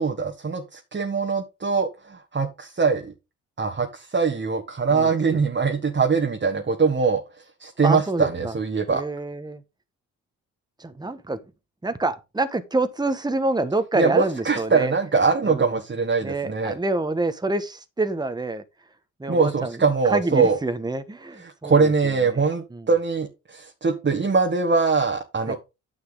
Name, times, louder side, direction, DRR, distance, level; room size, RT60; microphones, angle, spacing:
voice 1, 0.0-3.1 3.6-7.2 7.6-9.0 13.9-16.7 19.3-20.6 21.6-25.6, right 4 dB, 30° right, 1.6 m, -22 dB
voice 2, 4.9-5.4 7.8-8.5 8.9-9.6 10.8-11.4 11.8-14.9 15.4-15.8 16.2-18.6 19.2-19.8 20.1-22.4 22.7-22.9 25.5-25.6, right 2 dB, 10° right, 1.2 m, -27 dB
9.9 x 5.8 x 3.9 m
hypercardioid pair, 50°, 38 cm